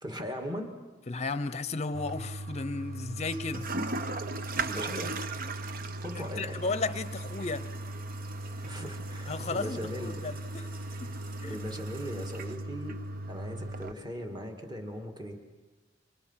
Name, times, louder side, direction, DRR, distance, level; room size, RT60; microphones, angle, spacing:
voice 1, 0.0-0.7 4.7-5.2 6.0-6.6 8.6-10.2 11.4-12.9 13.3-15.4, equal, 20° right, 2.2 m, -39 dB
voice 2, 1.1-3.7 6.1-7.6 9.3-10.7 11.0-11.1 11.4-11.6, left 3 dB, 35° left, 0.8 m, -34 dB
Toilet flush, 1.9-13.9, right 2 dB, 50° right, 0.9 m, -37 dB
29.0 x 25.5 x 5.8 m
head